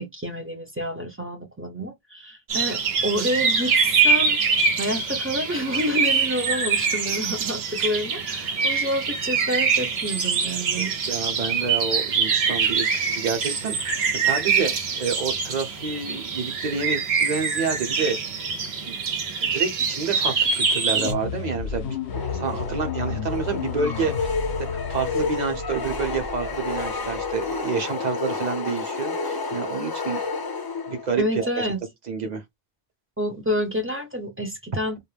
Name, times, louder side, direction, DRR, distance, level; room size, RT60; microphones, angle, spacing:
voice 1, 0.0-4.4 4.8-10.9 31.2-31.8 33.2-35.0, equal, 15° right, 0.5 m, -28 dB
sound 1, 2.5-21.1, right 5 dB, 80° right, 1.0 m, -24 dB
voice 2, 10.8-18.2 18.9-19.0 19.4-24.3 24.6-30.2 30.9-31.5 32.1-32.4, right 5 dB, 45° right, 0.8 m, -29 dB
sound 2, 20.9-27.6, left 6 dB, 75° left, 0.8 m, -33 dB
sound 3, 22.1-31.2, left 4 dB, 40° left, 0.3 m, -30 dB
2.4 x 2.1 x 3.2 m
omnidirectional pair, 1.0 m